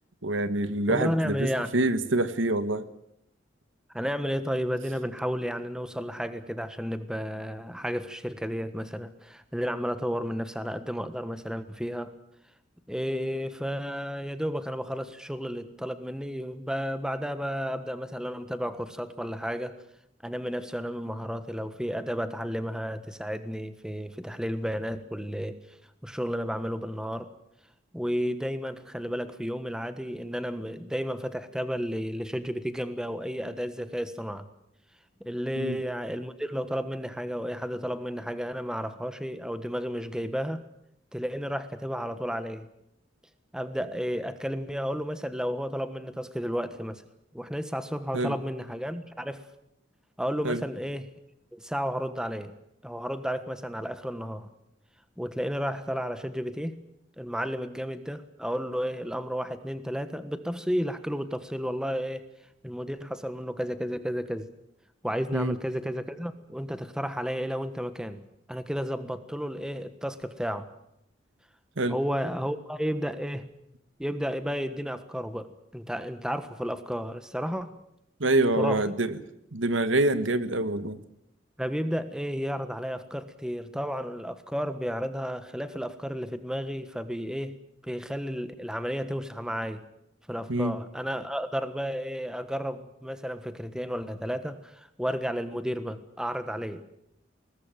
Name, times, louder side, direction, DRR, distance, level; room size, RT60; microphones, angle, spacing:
voice 1, 0.2-2.8 35.6-35.8 48.1-48.3 50.4-50.6 65.3-65.5 71.8-71.9 78.2-79.2 79.5-81.0 90.5-90.7, right 2 dB, 85° right, 12 dB, 1.6 m, -26 dB
voice 2, 0.9-1.7 3.9-12.1 12.9-19.7 20.2-25.6 26.0-27.3 27.9-34.5 35.2-40.6 41.1-42.7 43.5-47.0 47.3-49.4 50.2-51.1 51.5-52.5 52.8-54.5 55.2-56.8 57.2-62.2 62.6-64.5 65.0-68.2 68.5-70.7 71.9-73.5 74.0-77.7 78.6-78.9 81.6-87.6 87.8-89.8 90.3-96.8, equal, 5° right, 11 dB, 1.4 m, -32 dB
22.0 x 19.0 x 9.1 m, 0.78 s
head